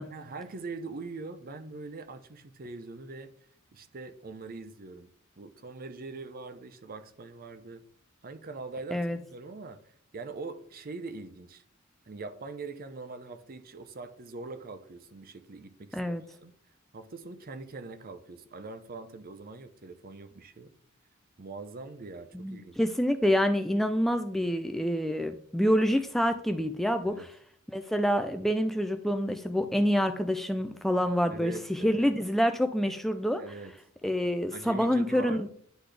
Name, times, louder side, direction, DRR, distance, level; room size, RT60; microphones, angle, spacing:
voice 1, 0.1-3.3 3.7-5.1 5.4-7.8 8.2-11.6 12.1-16.5 16.9-20.7 21.4-22.8 27.1-27.3 31.3-32.1 33.4-33.7 34.5-35.5, right 3 dB, 45° right, 11 dB, 0.6 m, -42 dB
voice 2, 15.9-16.2 22.3-27.3 27.7-33.4 34.0-35.5, equal, ahead, 7 dB, 0.3 m, -27 dB
10.0 x 4.0 x 3.3 m, 0.64 s
head